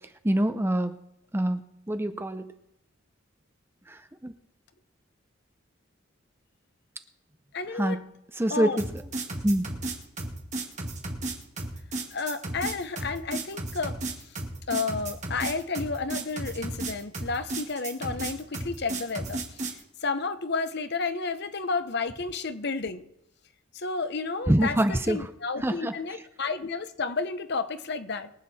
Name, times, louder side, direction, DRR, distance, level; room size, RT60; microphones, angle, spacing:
voice 1, 0.2-0.9 1.3-1.6 1.9-2.5 3.9-4.3 7.8-8.0 8.4-8.8 9.4-9.7 24.5-25.2 25.6-25.9, right 1 dB, 10° right, 9 dB, 0.6 m, -25 dB
voice 2, 7.5-8.0 8.5-8.8 12.1-14.4 14.7-23.0 23.7-28.3, left 4 dB, 55° left, 11 dB, 0.9 m, -31 dB
sound 1, 8.8-19.8, right 2 dB, 35° right, 2.2 m, -34 dB
23.5 x 8.2 x 4.3 m, 0.81 s
head